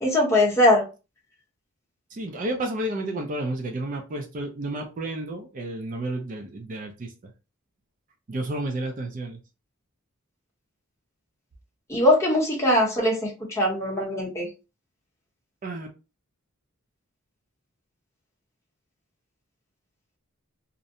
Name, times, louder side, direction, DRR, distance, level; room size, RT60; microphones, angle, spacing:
voice 1, 0.0-0.8 11.9-14.5, left 1 dB, 15° left, 0.8 m, -21 dB
voice 2, 2.1-7.3 8.3-9.4 15.6-15.9, right 1 dB, 40° right, 0.4 m, -31 dB
2.5 x 2.1 x 2.6 m
head